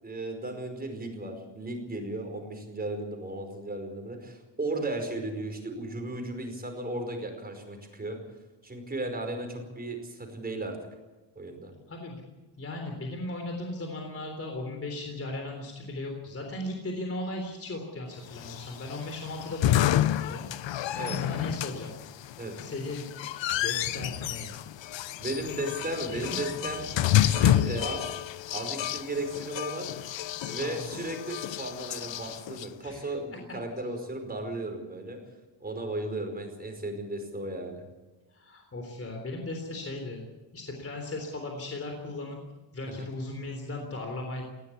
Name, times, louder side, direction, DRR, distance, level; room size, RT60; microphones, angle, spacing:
voice 1, 0.0-8.2 8.6-10.8 11.3-11.7 20.9-21.2 22.4-22.5 25.2-28.2 28.5-29.9 30.4-35.2 35.6-37.8 42.9-43.0, right 2 dB, 20° right, 4 dB, 5.0 m, -35 dB
voice 2, 11.9-12.2 12.6-22.0 22.6-23.1 23.5-24.6 26.1-26.4 26.6-26.7 30.3-30.8 32.8-33.1 38.3-40.2 40.5-42.4 42.7-44.4, left 2 dB, 30° left, 3 dB, 3.6 m, -37 dB
sound 1, 18.4-32.7, left 12 dB, 75° left, 0.8 m, -29 dB
20.0 x 17.0 x 8.5 m, 1.1 s
wide cardioid pair, 155°, 45 cm